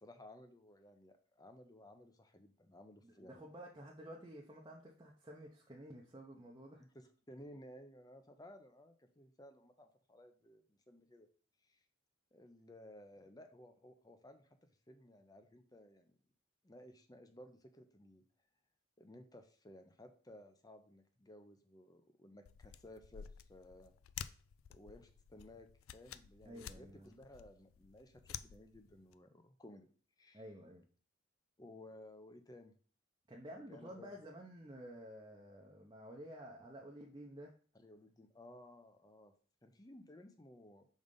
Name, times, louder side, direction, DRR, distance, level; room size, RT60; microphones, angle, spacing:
voice 1, 0.0-3.4 6.8-11.3 11.6-11.8 12.3-16.1 16.6-18.2 19.0-23.9 24.7-29.9 30.2-30.5 31.6-32.8 33.5-34.2 37.7-39.3 39.6-40.9, left 1 dB, 20° left, 7 dB, 0.6 m, -57 dB
voice 2, 3.0-6.8 26.5-27.1 30.3-30.8 33.3-37.5, equal, 20° right, -2 dB, 0.7 m, -52 dB
sound 1, 22.5-29.1, left 9 dB, 80° left, 0.4 m, -52 dB
5.3 x 3.9 x 5.3 m, 0.42 s
head